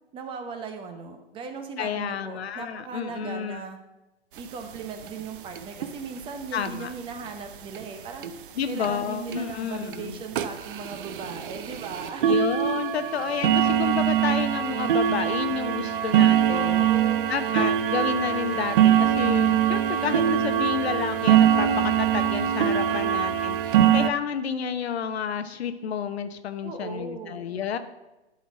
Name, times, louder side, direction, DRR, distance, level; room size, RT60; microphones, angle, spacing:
voice 1, 0.1-3.8 4.4-8.3 8.7-12.4 16.5-17.5 22.8-23.3 26.6-27.5, right 5 dB, 15° right, 6 dB, 0.8 m, -38 dB
voice 2, 1.8-3.6 6.5-6.9 8.6-10.2 12.2-16.8 17.3-27.8, left 7 dB, 70° left, 10 dB, 1.0 m, -30 dB
sound 1, 4.4-4.5 4.8-4.9 5.0-5.2 5.6-5.9 6.7-6.8 7.3-7.4 7.8-7.9 8.2-8.3 8.8-8.9 9.3-9.5 9.9-10.0 10.3-24.1, right 10 dB, 50° right, 0.7 m, -23 dB
12.0 x 4.4 x 6.1 m, 1.0 s
hypercardioid pair, 135°, 33 cm